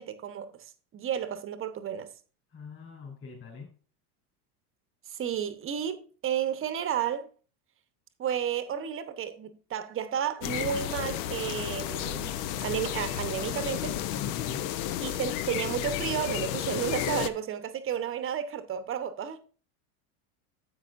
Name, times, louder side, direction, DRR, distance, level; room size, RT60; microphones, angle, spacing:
voice 1, 0.0-2.1 5.1-7.3 8.2-14.0 15.0-19.4, right 9 dB, 30° right, 0.9 m, -32 dB
voice 2, 2.5-3.7 14.1-14.8, left 5 dB, 25° left, 3.6 m, -43 dB
sound 1, 10.4-17.3, left 11 dB, 60° left, 0.8 m, -32 dB
10.0 x 8.2 x 2.5 m
supercardioid pair, 125°, 46 cm